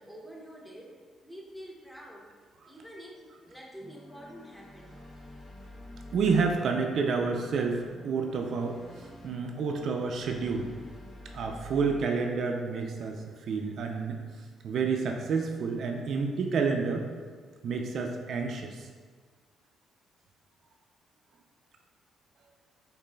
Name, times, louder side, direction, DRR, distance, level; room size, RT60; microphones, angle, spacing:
voice 1, 0.0-2.3 2.6-5.0, equal, 5° left, -2 dB, 0.7 m, -47 dB
sound 1, 3.8-12.0, left 1 dB, 30° left, 1.4 m, -48 dB
voice 2, 6.1-10.7 11.3-14.2 14.6-17.1 17.6-18.9, right 5 dB, 65° right, 2 dB, 0.3 m, -29 dB
4.9 x 2.5 x 2.2 m, 1.5 s
cardioid pair, 90°, 0 cm